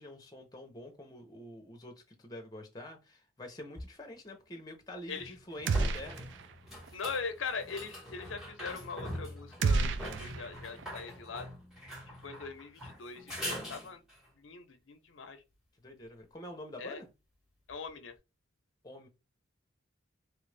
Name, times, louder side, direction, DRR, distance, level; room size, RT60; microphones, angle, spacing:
voice 1, 0.0-1.9 2.2-6.3 15.8-17.1 18.8-19.1, left 1 dB, 20° left, 0.8 m, -47 dB
sound 1, 3.8-3.9 5.1-14.3 17.7-17.8, equal, ahead, 1.3 m, -44 dB
sound 2, 5.7-6.5 6.8-6.9 9.6-10.9, right 4 dB, 65° right, 0.3 m, -31 dB
voice 2, 6.9-11.5 12.1-14.0 14.4-15.4 16.8-17.0 17.7-18.1, left 5 dB, 90° left, 0.6 m, -41 dB
3.4 x 2.5 x 3.3 m
head